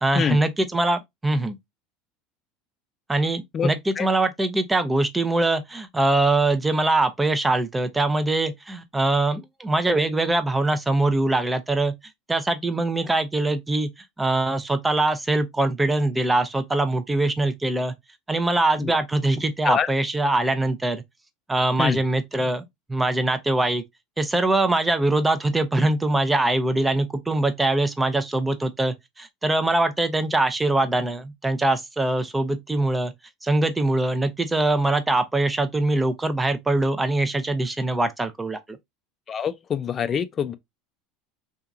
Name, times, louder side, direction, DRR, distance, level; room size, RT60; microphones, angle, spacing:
voice 1, 0.0-1.6 3.1-11.9 12.3-13.9 14.2-17.9 18.3-21.0 21.5-22.6 22.9-23.8 24.2-33.1 33.4-38.8, right 2 dB, 10° right, 0.6 m, -23 dB
voice 2, 39.3-40.5, left 7 dB, 35° left, 0.4 m, -25 dB
2.8 x 2.5 x 2.4 m
hypercardioid pair, 90°, 0 cm